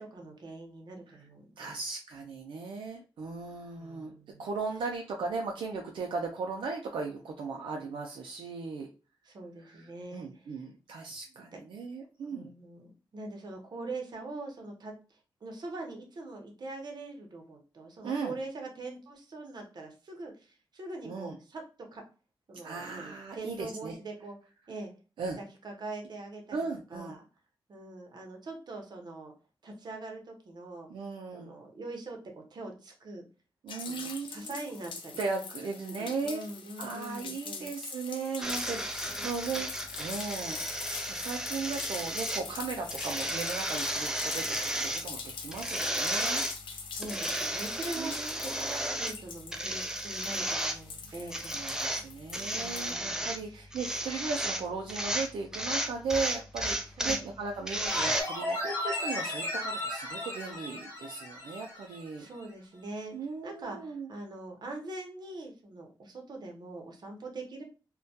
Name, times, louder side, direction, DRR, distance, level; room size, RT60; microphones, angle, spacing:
voice 1, 0.0-1.7 3.8-4.5 9.2-10.6 11.3-11.6 12.3-22.0 22.5-24.4 24.7-24.9 25.4-26.6 26.9-27.2 27.7-29.3 29.6-30.9 31.3-33.2 33.8-35.2 35.8-37.7 39.2-39.3 46.9-52.1 52.5-53.7 57.0-57.3 62.2-63.2 63.4-67.6, right 2 dB, 55° right, 2 dB, 0.7 m, -43 dB
voice 2, 1.6-4.1 4.4-8.9 9.6-12.5 18.0-18.4 21.0-21.4 22.6-24.0 25.2-25.4 26.5-27.2 30.9-31.5 33.6-34.5 35.2-36.4 36.8-39.7 40.0-46.4 48.0-49.1 51.0-51.3 51.5-62.3 63.1-64.1, right 4 dB, 85° right, 1 dB, 0.4 m, -37 dB
sound 1, 33.7-52.9, left 5 dB, 75° left, 0.4 m, -43 dB
sound 2, 38.4-58.2, right 1 dB, 5° right, 0.3 m, -34 dB
sound 3, 57.9-62.1 62.4-62.5, left 1 dB, 35° left, 0.9 m, -35 dB
2.1 x 2.1 x 2.7 m, 0.34 s
wide cardioid pair, 95°, 8 cm